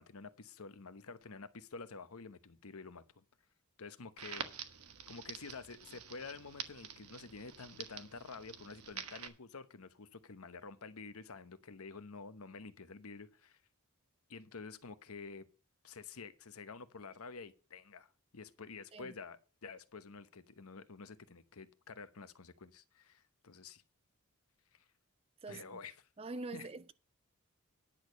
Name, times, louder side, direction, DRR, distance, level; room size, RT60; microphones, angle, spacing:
voice 1, 0.0-3.2 3.8-4.4 5.1-13.6 14.3-15.5 15.8-23.8 24.7-24.9 25.5-26.1 26.5-26.7, left 4 dB, 75° left, 0.9 m, -49 dB
Crackle, 4.2-9.3, right 8 dB, 80° right, 1.2 m, -47 dB
voice 2, 26.2-26.9, right 3 dB, 25° right, 0.4 m, -44 dB
10.5 x 6.4 x 6.5 m
head